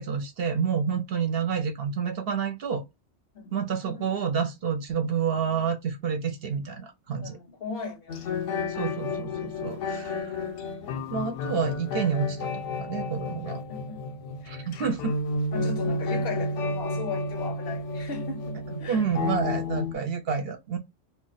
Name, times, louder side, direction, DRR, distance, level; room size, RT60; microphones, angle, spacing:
voice 1, 0.0-2.8 3.5-7.4 8.7-10.5 11.1-12.5 12.8-13.6 14.5-15.1 18.9-20.8, right 6 dB, 60° right, 0.8 m, -29 dB
voice 2, 3.3-4.1 7.2-8.2 9.2-9.6 13.5-14.7 15.5-19.1, left 5 dB, 65° left, 0.7 m, -39 dB
sound 1, 8.1-19.9, left 2 dB, 85° left, 0.9 m, -31 dB
2.3 x 2.2 x 3.9 m
omnidirectional pair, 1.2 m